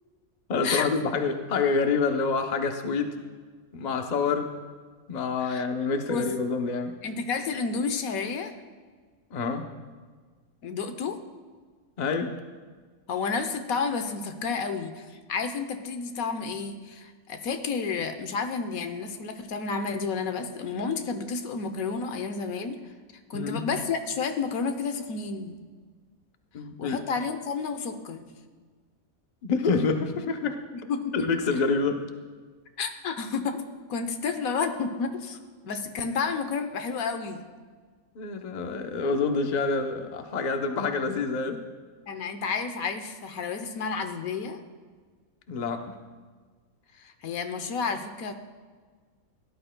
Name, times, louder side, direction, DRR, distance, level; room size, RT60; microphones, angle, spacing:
voice 1, 0.5-3.1 3.7-4.5 5.1-7.0 9.3-9.7 12.0-12.3 23.3-23.7 26.5-27.0 29.4-30.6 31.1-32.0 38.2-41.6 45.5-46.0, left 4 dB, 40° left, 5 dB, 0.7 m, -27 dB
voice 2, 7.0-8.5 10.6-11.2 13.1-22.9 23.3-25.6 26.8-28.3 30.7-31.3 32.8-33.6 33.9-35.4 35.6-37.4 42.1-44.6 47.0-48.3, left 5 dB, 85° left, 8 dB, 1.3 m, -31 dB
17.5 x 11.0 x 2.2 m, 1.5 s
omnidirectional pair, 1.5 m